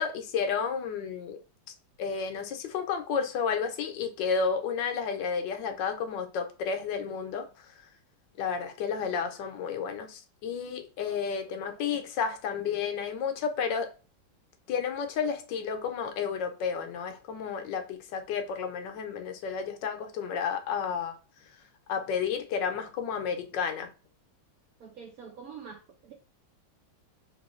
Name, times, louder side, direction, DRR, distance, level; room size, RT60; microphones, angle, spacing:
voice 1, 0.0-1.4 2.0-7.7 8.4-13.9 14.7-21.2 21.9-23.9, left 6 dB, 75° left, 1.2 m, -31 dB
voice 2, 11.5-12.0 24.8-26.1, right 6 dB, 70° right, 0.8 m, -47 dB
3.0 x 3.0 x 3.0 m
omnidirectional pair, 2.1 m